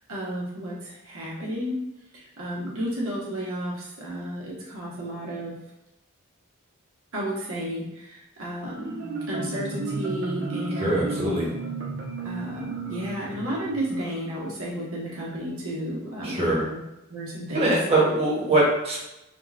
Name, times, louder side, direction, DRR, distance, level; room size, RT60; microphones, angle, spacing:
voice 1, 0.1-1.8 2.1-5.5 7.1-9.0 9.3-11.2 12.2-16.8 17.1-17.7, right 1 dB, 85° right, -4 dB, 1.1 m, -32 dB
Marimba xylophone, 8.6-14.2, right 3 dB, 60° right, 0.7 m, -33 dB
voice 2, 10.8-11.5 16.2-16.6 17.5-19.0, right 2 dB, 30° right, -5 dB, 1.0 m, -22 dB
3.6 x 2.3 x 2.4 m, 0.91 s
head